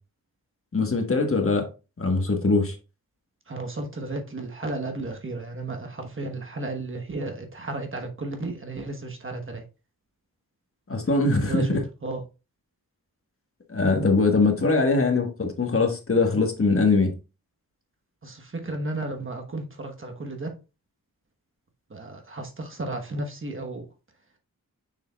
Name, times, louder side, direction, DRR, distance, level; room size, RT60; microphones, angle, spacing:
voice 1, 0.7-1.7 2.0-2.8 10.9-11.8 13.7-17.1, left 3 dB, 40° left, 1.3 m, -22 dB
voice 2, 3.5-9.6 11.4-11.7 12.0-12.2 14.6-14.7 18.2-20.5 21.9-23.9, right 2 dB, 35° right, 1.2 m, -33 dB
6.6 x 6.3 x 2.3 m
wide cardioid pair, 110°, 35 cm